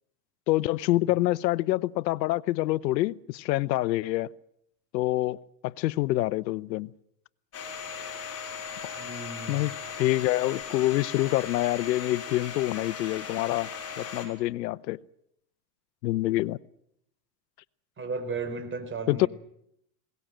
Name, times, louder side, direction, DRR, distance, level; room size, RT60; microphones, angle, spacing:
voice 1, 0.5-4.3 4.9-5.4 5.6-6.9 9.5-9.7 10.0-13.7 14.0-15.0 16.0-16.6 19.1-19.3, left 17 dB, 85° left, 0.8 m, -26 dB
Domestic sounds home sounds, 7.5-14.3, left 6 dB, 30° left, 6.5 m, -38 dB
voice 2, 8.9-9.6 18.0-19.3, right 3 dB, 25° right, 4.3 m, -35 dB
21.0 x 18.5 x 8.9 m
supercardioid pair, 115°, 50 cm